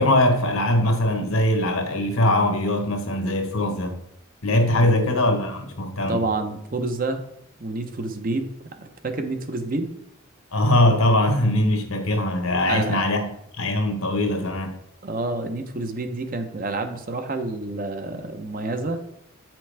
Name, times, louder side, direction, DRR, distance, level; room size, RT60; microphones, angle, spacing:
voice 1, 0.0-4.0 4.4-6.2 10.5-13.2 13.6-14.7, left 1 dB, 75° left, 1.3 m, -21 dB
voice 2, 4.8-5.2 6.1-7.2 7.6-8.5 8.8-9.9 12.7-13.0 15.0-19.0, right 2 dB, 40° right, 0.8 m, -28 dB
8.4 x 6.0 x 3.4 m
head